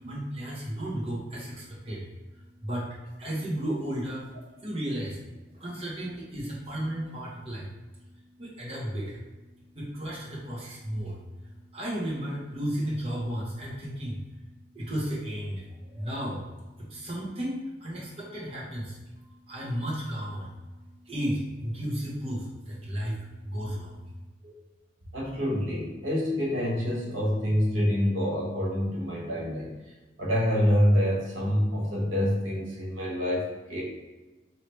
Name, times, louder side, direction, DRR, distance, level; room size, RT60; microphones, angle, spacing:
voice 1, 0.1-2.1 2.6-4.3 4.6-5.2 5.5-7.7 8.4-9.2 9.7-11.2 11.7-14.2 14.7-16.4 16.8-20.5 21.0-24.0, equal, 30° right, -6 dB, 0.9 m, -34 dB
voice 2, 25.1-29.7 30.2-33.8, equal, 85° right, -4 dB, 1.3 m, -26 dB
4.7 x 3.1 x 3.1 m, 1.2 s
head